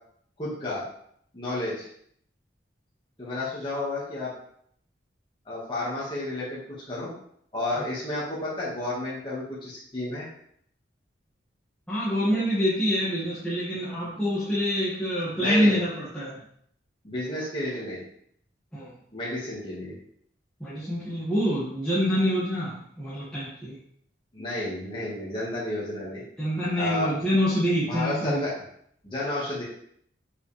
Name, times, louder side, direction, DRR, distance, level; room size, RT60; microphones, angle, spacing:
voice 1, 0.4-0.8 1.3-1.9 3.2-4.3 5.5-6.6 6.9-7.1 7.5-10.3 15.3-15.8 17.0-18.0 19.1-20.0 24.3-26.2 26.8-27.2 27.8-28.6 29.0-29.6, left 2 dB, 25° left, -8 dB, 1.9 m, -31 dB
voice 2, 11.9-16.4 18.7-18.9 20.6-23.8 26.4-28.4, equal, 5° left, -11 dB, 2.1 m, -26 dB
8.0 x 5.5 x 3.5 m, 0.67 s
head